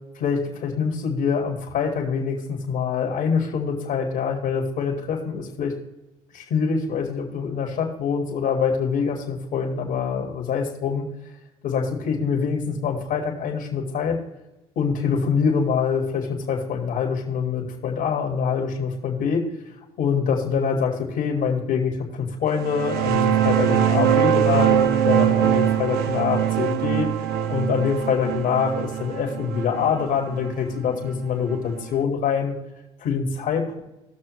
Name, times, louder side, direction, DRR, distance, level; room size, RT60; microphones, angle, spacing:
voice 1, 0.1-5.7 6.3-11.1 11.6-14.2 14.8-19.5 20.0-27.1 27.5-32.5 33.0-33.8, left 6 dB, 70° left, 1 dB, 2.0 m, -25 dB
sound 1, 22.6-31.9, right 10 dB, 75° right, 0.8 m, -22 dB
17.5 x 6.5 x 3.1 m, 0.98 s
hypercardioid pair, 60°, 16 cm